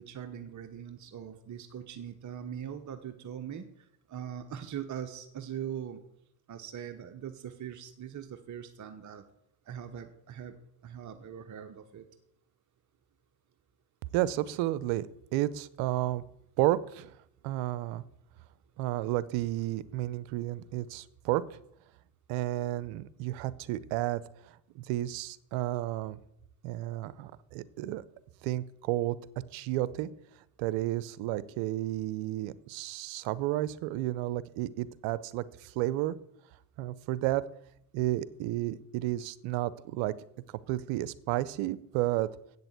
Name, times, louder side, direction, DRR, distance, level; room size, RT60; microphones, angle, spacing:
voice 1, 0.0-6.0 6.5-9.2 9.7-10.5 10.8-12.1, right 9 dB, 40° right, 6 dB, 1.1 m, -41 dB
voice 2, 14.1-16.2 16.6-17.1 17.4-18.0 18.8-21.6 22.3-24.2 24.7-26.2 26.6-28.0 28.4-29.2 29.5-30.1 30.6-36.2 36.8-37.4 37.9-40.1 40.7-42.3, right 15 dB, 75° right, 18 dB, 0.8 m, -32 dB
8.3 x 6.8 x 8.1 m, 0.76 s
supercardioid pair, 80°, 45 cm